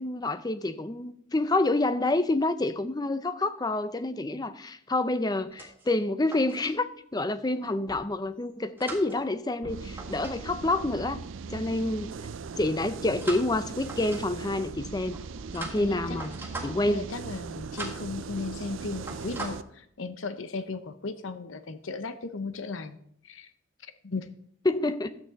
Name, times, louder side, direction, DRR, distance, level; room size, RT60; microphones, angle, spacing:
voice 1, 0.0-11.2 11.5-12.1 12.6-15.2 15.5-16.3 16.6-17.1 24.7-25.2, left 2 dB, 20° left, 0.5 m, -28 dB
sound 1, 5.4-6.8 7.6-8.0 8.6-10.4 10.6-10.9 13.2-14.5 15.1-17.0 17.3-17.5 17.7-18.1 18.5-18.7 18.9-19.5, right 2 dB, 10° right, 1.6 m, -41 dB
sound 2, 9.6-19.6, right 5 dB, 70° right, 0.5 m, -39 dB
voice 2, 15.8-16.2 16.9-23.0 23.2-23.5 24.0-24.3, left 3 dB, 75° left, 0.8 m, -36 dB
12.5 x 7.7 x 4.1 m
head